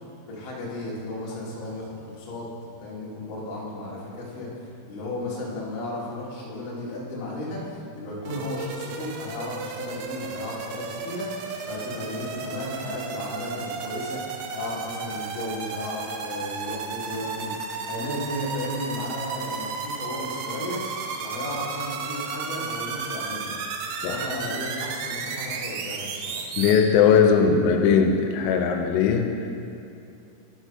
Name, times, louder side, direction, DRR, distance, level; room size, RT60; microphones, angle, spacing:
voice 1, 0.3-2.5 2.8-4.5 4.9-17.5 17.9-20.8 21.2-23.5 24.0-26.4, left 1 dB, 55° left, -6 dB, 2.5 m, -34 dB
sound 1, 8.3-26.8, right 5 dB, 85° right, 2.6 m, -34 dB
voice 2, 26.6-29.5, left 6 dB, 90° left, 4 dB, 3.3 m, -19 dB
11.0 x 4.6 x 5.7 m, 2.6 s
omnidirectional pair, 6.0 m